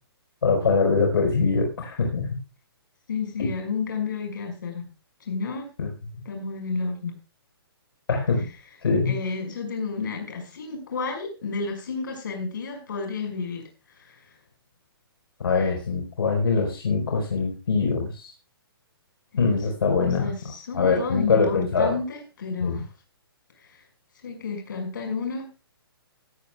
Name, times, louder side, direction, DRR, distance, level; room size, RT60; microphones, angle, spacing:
voice 1, 0.4-2.4 3.4-3.5 5.8-5.9 8.1-8.5 8.8-9.1 15.4-18.3 19.4-20.3 20.7-22.0 22.6-22.8, left 4 dB, 70° left, 1 dB, 4.7 m, -23 dB
voice 2, 3.1-4.9 5.2-5.7 6.2-7.1 9.0-14.3 19.3-19.6 20.0-22.9 23.6-23.8 24.2-25.5, left 4 dB, 55° left, 4 dB, 5.9 m, -31 dB
17.5 x 12.5 x 2.4 m, 0.31 s
hypercardioid pair, 180°, 13 cm